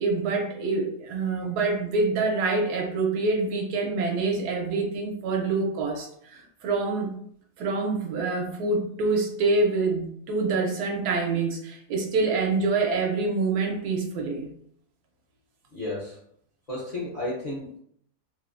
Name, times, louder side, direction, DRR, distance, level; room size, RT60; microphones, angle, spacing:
voice 1, 0.0-6.1 6.6-7.1 7.6-14.5, right 3 dB, 85° right, 0 dB, 1.2 m, -26 dB
voice 2, 15.7-16.2 16.7-17.8, left 1 dB, 55° left, -7 dB, 0.4 m, -32 dB
3.2 x 2.0 x 2.4 m, 0.67 s
omnidirectional pair, 1.7 m